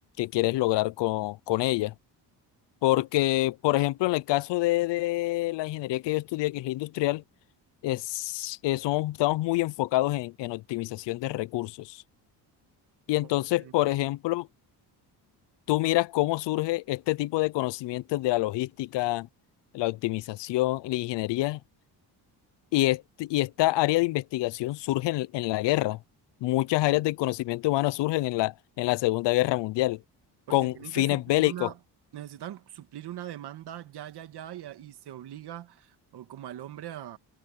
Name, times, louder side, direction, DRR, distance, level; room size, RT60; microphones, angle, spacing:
voice 1, 0.2-1.9 2.8-7.2 7.8-12.0 13.1-14.5 15.7-19.3 19.7-21.6 22.7-26.0 26.4-30.0 30.5-31.7, left 18 dB, 80° left, 0.7 m, -26 dB
voice 2, 13.6-13.9 30.5-31.8 32.1-37.2, right 12 dB, 65° right, 2.2 m, -41 dB
cardioid pair, 125°, 42 cm